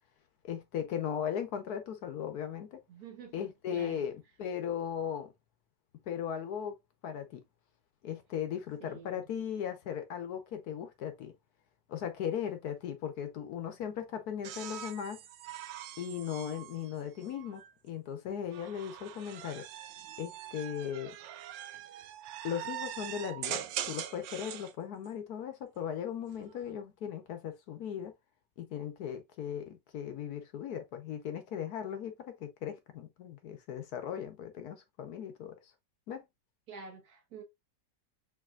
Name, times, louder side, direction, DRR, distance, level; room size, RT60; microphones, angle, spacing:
voice 1, 0.4-2.8 3.3-5.3 6.1-6.7 7.0-7.4 8.0-11.3 11.9-15.2 16.0-19.6 20.2-21.1 22.4-28.1 28.6-32.1 32.4-35.5 36.1-36.3, left 8 dB, 65° left, 1.2 m, -37 dB
voice 2, 2.9-4.1 8.8-9.3 21.8-21.9 36.7-37.4, right 5 dB, 60° right, 1.5 m, -49 dB
sound 1, 14.4-17.7 18.5-24.7 26.2-26.7, right 11 dB, 85° right, 1.3 m, -42 dB
4.9 x 4.0 x 2.3 m
omnidirectional pair, 1.9 m